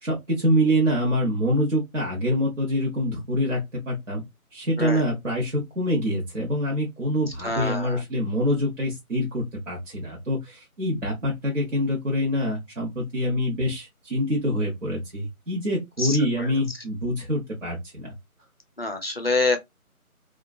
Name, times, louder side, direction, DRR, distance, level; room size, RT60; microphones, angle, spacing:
voice 1, 0.0-3.6 3.9-4.2 4.5-18.1, equal, 55° right, 1.1 m, -25 dB
voice 2, 7.4-8.0 16.0-16.5 18.8-19.6, left 3 dB, 45° left, 0.5 m, -26 dB
3.0 x 2.4 x 2.3 m
figure-of-eight pair, 170°, 44 cm